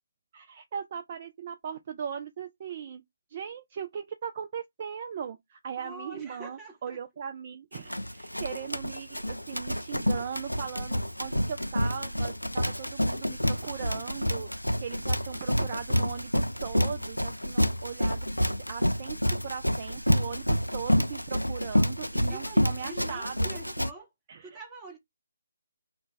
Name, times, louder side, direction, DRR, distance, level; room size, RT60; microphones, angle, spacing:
voice 1, 0.3-3.0 3.3-14.5 14.8-18.3 18.7-19.2 19.4-23.4 24.3-24.6, right 7 dB, 35° right, 0.3 m, -38 dB
voice 2, 5.8-7.0 22.2-24.1 24.4-25.0, right 2 dB, 10° right, 0.9 m, -45 dB
Run, 7.7-23.9, equal, 90° left, 0.3 m, -28 dB
2.2 x 2.1 x 3.8 m
figure-of-eight pair, 145°, 0 cm